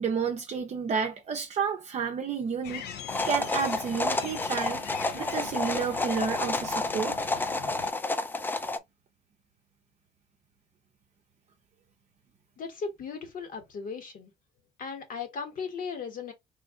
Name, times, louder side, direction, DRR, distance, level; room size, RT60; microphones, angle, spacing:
voice 1, 0.0-2.9 3.3-4.8 5.1-7.2, right 6 dB, 40° right, 0.6 m, -31 dB
sound 1, 2.6-7.9, left 9 dB, 70° left, 0.7 m, -42 dB
sound 2, 3.1-8.8, left 2 dB, 10° left, 0.4 m, -30 dB
voice 2, 12.6-14.3 14.8-16.3, left 5 dB, 55° left, 1.4 m, -37 dB
3.2 x 2.3 x 3.7 m
cardioid pair, 110°, 17 cm